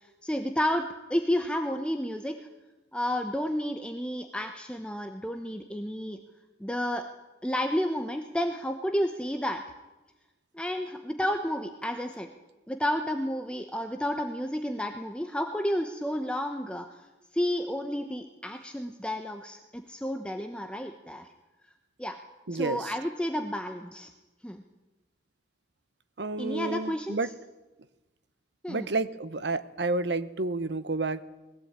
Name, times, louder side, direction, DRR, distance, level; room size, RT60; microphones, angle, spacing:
voice 1, 0.0-2.4 2.9-6.2 6.6-7.1 7.4-9.6 10.5-12.3 12.7-16.9 17.3-21.3 22.0-22.2 22.5-24.1 24.4-24.6 26.4-27.2 28.6-28.9, equal, 5° left, 5 dB, 0.9 m, -31 dB
voice 2, 22.5-22.8 26.2-27.3 28.7-31.2, right 3 dB, 70° right, 14 dB, 1.0 m, -30 dB
20.5 x 15.5 x 8.9 m, 1.1 s
head